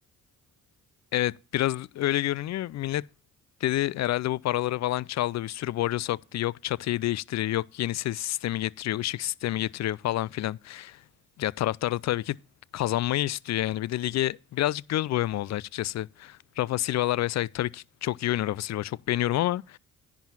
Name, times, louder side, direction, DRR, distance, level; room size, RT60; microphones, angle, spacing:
voice 1, 1.1-3.0 3.6-11.0 11.4-12.4 12.7-19.8, left 14 dB, 45° left, 0.4 m, -28 dB
10.5 x 4.7 x 7.1 m
hypercardioid pair, 45°, 40 cm